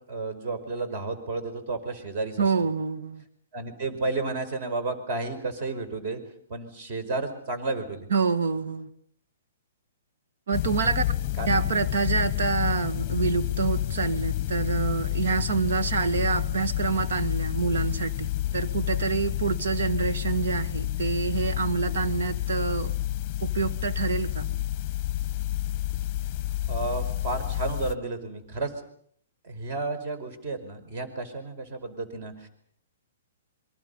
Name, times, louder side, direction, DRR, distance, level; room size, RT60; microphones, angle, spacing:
voice 1, 0.1-2.5 3.5-6.2 6.5-8.1 11.4-11.6 26.7-28.8 29.4-32.5, right 3 dB, 40° right, 9 dB, 5.1 m, -32 dB
voice 2, 2.4-3.2 8.1-8.9 10.5-11.0 11.5-22.9 23.4-24.5, right 5 dB, 75° right, 10 dB, 2.0 m, -27 dB
sound 1, 10.5-28.0, left 14 dB, 30° left, 0.9 m, -29 dB
28.0 x 23.0 x 5.6 m, 0.64 s
hypercardioid pair, 165°, 0 cm